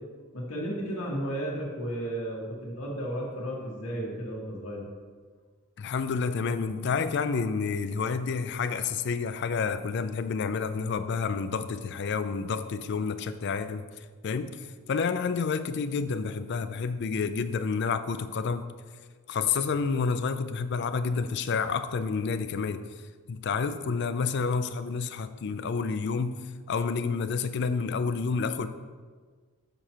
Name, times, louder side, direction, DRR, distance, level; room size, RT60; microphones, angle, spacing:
voice 1, 0.3-4.8, right 1 dB, 85° left, -3 dB, 1.6 m, -33 dB
voice 2, 5.8-18.7 19.3-22.9 23.3-26.4 26.7-28.7, left 5 dB, 50° left, 11 dB, 0.4 m, -29 dB
6.9 x 4.4 x 5.6 m, 1.5 s
head